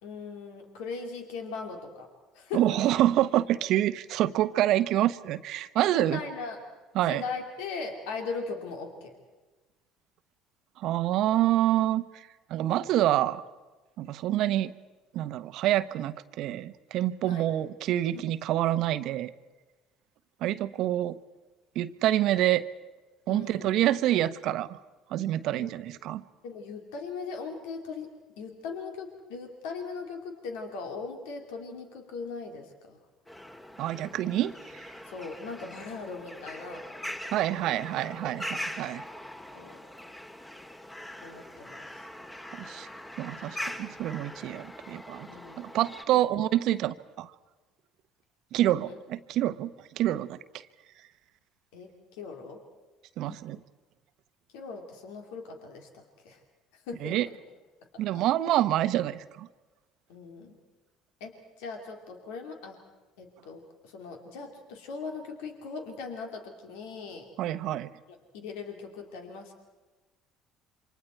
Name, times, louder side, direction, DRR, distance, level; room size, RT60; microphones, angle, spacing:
voice 1, 0.0-2.1 2.3-2.6 5.7-6.6 7.1-9.2 12.6-12.9 17.3-17.5 18.1-18.3 23.3-23.9 25.5-25.7 26.4-33.0 35.1-36.8 39.5-39.8 41.2-42.1 45.3-45.7 46.1-46.2 46.7-46.8 48.8-49.0 51.7-52.6 53.3-53.4 54.5-56.4 56.9-57.2 58.1-58.2 60.1-60.6 61.2-62.8 63.2-67.3 68.3-69.6, left 4 dB, 75° left, 3 dB, 3.0 m, -39 dB
voice 2, 2.5-6.2 6.9-7.2 10.8-13.4 14.0-14.7 15.1-19.3 20.4-21.2 21.7-22.6 23.3-24.8 25.1-26.2 33.8-34.8 37.3-39.0 42.5-42.9 43.2-45.3 45.6-47.3 48.5-49.7 50.0-50.4 53.2-53.6 57.0-57.3 58.0-59.5 67.4-67.9, right 13 dB, 65° right, 13 dB, 0.9 m, -27 dB
sound 1, 33.3-46.0, left 1 dB, 15° left, 2.1 m, -42 dB
28.0 x 25.0 x 4.5 m, 1.2 s
hypercardioid pair, 65°, 0 cm